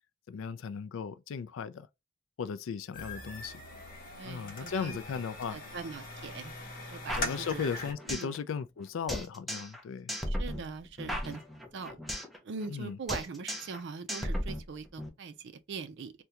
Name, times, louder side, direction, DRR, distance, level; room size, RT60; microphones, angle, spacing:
voice 1, 0.3-1.9 2.4-3.6 4.2-5.6 7.1-10.1 12.7-13.0, left 6 dB, 70° left, 0.3 m, -36 dB
sound 1, 2.9-7.9, left 2 dB, 45° left, 0.8 m, -41 dB
voice 2, 4.2-5.0 5.5-6.5 6.9-7.7 8.1-8.3 10.3-11.4 11.7-12.0 12.4-16.1, right 4 dB, 60° right, 0.4 m, -41 dB
sound 2, 7.1-8.4 8.6-8.7 9.1-9.8 10.1-12.4 12.6-12.8 13.1-13.8 14.1-15.1, equal, ahead, 0.5 m, -36 dB
3.6 x 2.2 x 2.8 m
head